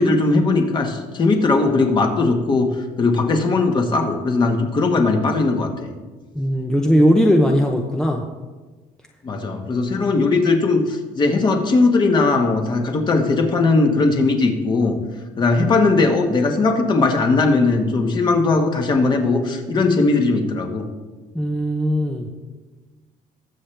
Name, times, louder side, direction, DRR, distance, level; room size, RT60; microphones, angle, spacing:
voice 1, 0.0-5.9 9.2-15.0 15.4-20.9, left 3 dB, 30° left, 4 dB, 1.5 m, -19 dB
voice 2, 6.4-8.2 21.3-22.3, equal, 5° left, 2 dB, 0.8 m, -18 dB
20.5 x 7.4 x 3.4 m, 1.3 s
cardioid pair, 130°, 14 cm